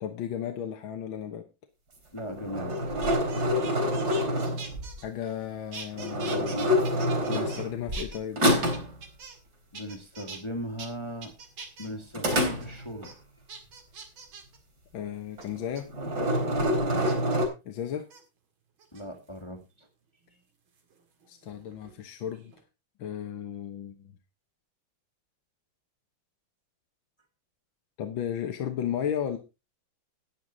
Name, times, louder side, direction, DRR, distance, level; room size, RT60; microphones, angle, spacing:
voice 1, 0.0-1.4 5.0-6.8 7.3-8.4 14.9-15.9 17.7-18.0 21.3-22.5 23.0-24.1 28.0-29.4, left 9 dB, 75° left, 6 dB, 1.8 m, -34 dB
voice 2, 2.1-2.8 9.7-11.3 11.8-13.2 16.8-17.1 18.9-19.9, equal, 15° left, 4 dB, 1.4 m, -38 dB
sound 1, 2.2-5.0 5.9-8.1 8.4-9.0 12.1-13.1 15.4-15.6 15.9-17.5, equal, 50° right, 3.8 m, -27 dB
sound 2, 2.7-5.4 5.7-7.6 7.9-9.5 9.7-10.4 10.8-10.9 11.2-11.9 12.3-12.7 13.0-13.1 13.5-14.6 15.4-15.8 17.1-17.4 18.0-18.2 18.8-19.4 20.8-22.0 22.2-22.6, right 5 dB, 85° right, 2.8 m, -44 dB
11.5 x 9.3 x 3.9 m, 0.27 s
omnidirectional pair, 2.2 m